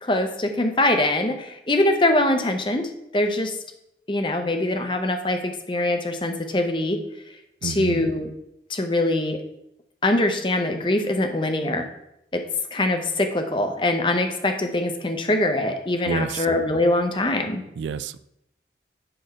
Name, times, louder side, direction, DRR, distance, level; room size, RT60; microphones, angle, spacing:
voice 1, 0.0-2.8 3.1-3.5 4.1-7.0 7.6-8.3 8.7-9.4 10.0-11.9 12.3-12.4 12.7-17.6, left 1 dB, 30° left, 6 dB, 0.8 m, -23 dB
voice 2, 7.6-8.1 16.1-16.5 17.8-18.2, right 6 dB, 90° right, 16 dB, 0.3 m, -29 dB
7.7 x 4.5 x 5.6 m, 0.80 s
head